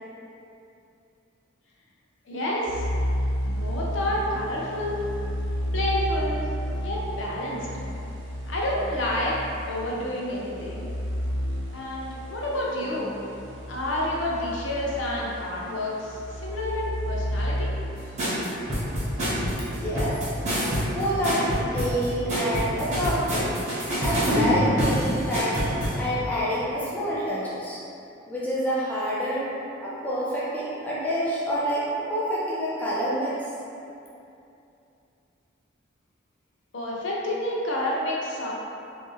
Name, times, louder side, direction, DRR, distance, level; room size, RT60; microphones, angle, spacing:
voice 1, 2.3-2.9 3.6-5.0 5.7-6.5 6.8-7.7 8.5-9.4 9.7-10.9 11.7-13.1 13.7-17.7 36.7-38.5, left 1 dB, 75° left, -4 dB, 0.6 m, -29 dB
sound 1, 2.7-21.7, equal, 85° right, 0.6 m, -33 dB
sound 2, 18.2-26.0, equal, 35° right, 1.2 m, -26 dB
voice 2, 19.8-20.2 20.8-23.5 24.0-25.6 26.0-27.8 28.3-29.5 29.8-33.4, equal, 10° left, -9 dB, 0.5 m, -27 dB
3.3 x 2.7 x 3.5 m, 2.7 s
head